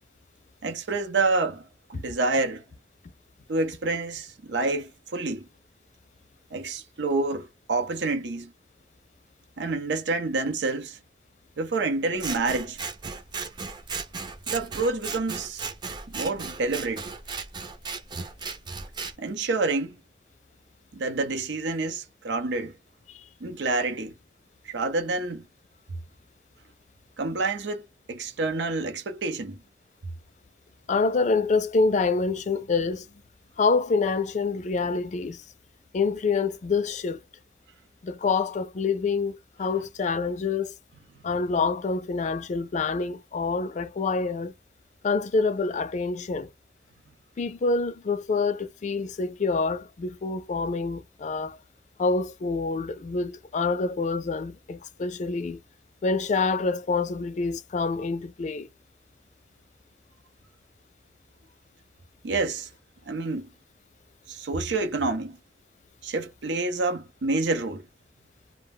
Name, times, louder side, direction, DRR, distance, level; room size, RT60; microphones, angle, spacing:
voice 1, 0.6-2.6 3.5-5.5 6.5-8.5 9.6-11.0 11.6-12.8 14.5-15.7 16.1-17.0 19.2-20.0 20.9-22.7 23.4-24.1 24.6-25.4 27.2-29.6 62.2-62.7 63.1-63.5 64.3-65.4 66.0-67.8, right 3 dB, 90° right, 0.7 m, -28 dB
Scissors, 12.2-19.1, right 4 dB, 25° right, 0.4 m, -36 dB
voice 2, 30.9-33.1 33.6-35.4 35.9-37.2 38.0-40.7 41.2-44.5 45.0-46.5 47.4-51.6 52.0-55.6 56.0-58.7, left 4 dB, 45° left, 0.4 m, -26 dB
2.4 x 2.1 x 3.4 m
head